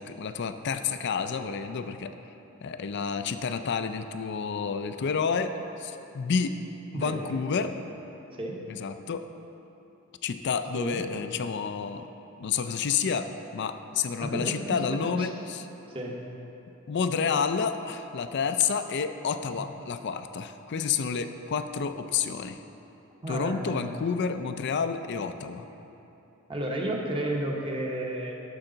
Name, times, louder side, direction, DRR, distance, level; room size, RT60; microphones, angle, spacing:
voice 1, 0.0-2.2 2.6-6.6 6.9-7.7 8.7-9.3 10.2-12.1 12.4-15.7 16.9-22.6 23.3-25.6, left 6 dB, 55° left, 9 dB, 0.4 m, -29 dB
voice 2, 14.2-15.3 15.9-16.2 19.5-19.6 23.2-24.5 26.5-28.3, right 1 dB, 25° right, -1 dB, 1.0 m, -33 dB
11.5 x 6.6 x 3.9 m, 3.0 s
head